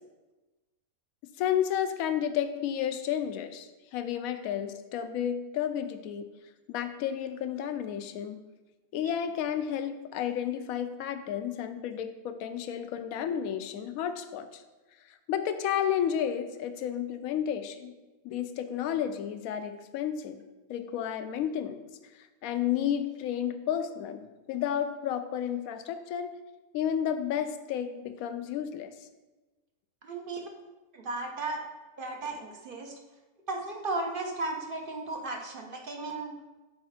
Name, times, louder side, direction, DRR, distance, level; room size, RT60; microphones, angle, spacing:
voice 1, 1.4-6.3 6.7-8.4 8.9-14.6 15.1-17.9 18.2-20.4 20.7-21.8 22.1-26.3 26.7-29.1, left 9 dB, 75° left, 9 dB, 1.0 m, -32 dB
voice 2, 30.0-30.5 30.9-31.6 32.0-32.9 33.5-36.4, right 2 dB, 45° right, 2 dB, 0.9 m, -35 dB
6.7 x 4.9 x 4.2 m, 1.1 s
omnidirectional pair, 1.5 m